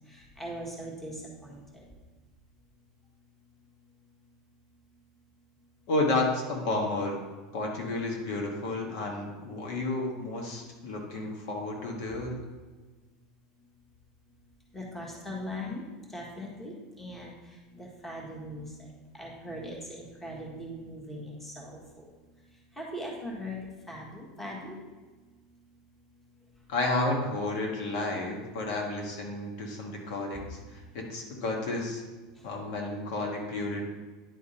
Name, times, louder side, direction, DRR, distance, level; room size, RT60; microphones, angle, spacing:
voice 1, 0.1-1.1 1.4-1.6 14.7-15.8 16.1-17.3 17.7-18.7 19.1-21.8 22.8-23.6 23.9-24.8, equal, 10° left, -3 dB, 1.5 m, -40 dB
voice 2, 5.9-7.2 7.5-12.4 26.7-32.0 32.4-33.8, left 2 dB, 70° left, 0 dB, 1.6 m, -31 dB
9.9 x 3.6 x 4.3 m, 1.3 s
supercardioid pair, 130°, 3 cm